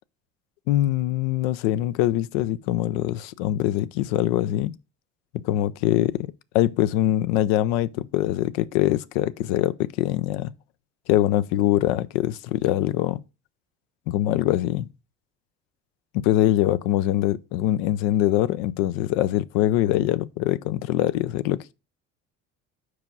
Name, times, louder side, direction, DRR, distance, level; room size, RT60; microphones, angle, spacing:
voice 1, 0.7-4.7 5.4-10.5 11.1-13.2 14.1-14.9 16.2-21.7, left 14 dB, 85° left, 0.5 m, -23 dB
4.8 x 4.8 x 5.3 m
supercardioid pair, 80°, 31 cm